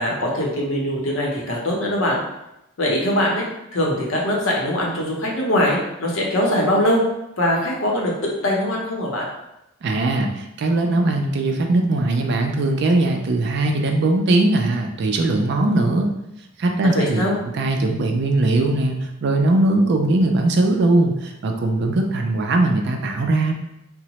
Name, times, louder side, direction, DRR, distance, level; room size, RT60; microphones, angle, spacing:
voice 1, 0.0-2.2 2.8-3.4 3.7-7.0 7.4-9.3 16.9-17.4, left 1 dB, 70° left, -2 dB, 0.7 m, -22 dB
voice 2, 9.8-16.1 16.6-17.2 17.5-23.5, right 2 dB, 55° right, 3 dB, 0.4 m, -20 dB
2.9 x 2.0 x 2.9 m, 0.87 s
head